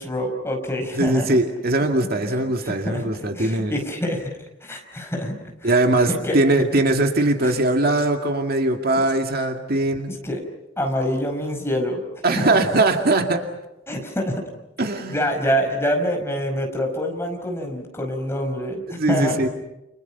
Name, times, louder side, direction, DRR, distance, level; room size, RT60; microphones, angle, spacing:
voice 1, 0.0-1.4 2.2-6.4 7.4-7.6 9.0-9.1 10.1-10.4 10.8-12.0 12.3-12.6 13.9-14.4 15.1-19.5, equal, 15° left, 3 dB, 5.0 m, -26 dB
voice 2, 0.9-3.7 5.6-10.1 12.2-13.4 14.8-15.2 19.0-19.5, right 2 dB, 50° right, 4 dB, 2.3 m, -20 dB
29.5 x 29.0 x 5.8 m, 0.94 s
head